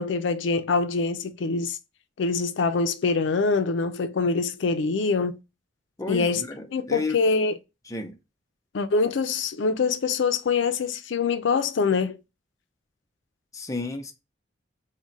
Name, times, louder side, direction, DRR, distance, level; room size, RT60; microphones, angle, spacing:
voice 1, 0.0-1.8 2.2-5.4 6.1-6.4 6.7-7.6 8.7-12.2, left 4 dB, 80° left, 0.4 m, -24 dB
voice 2, 6.0-7.2 7.9-8.1 13.5-14.1, left 2 dB, 20° left, 0.6 m, -32 dB
3.6 x 2.2 x 3.9 m
head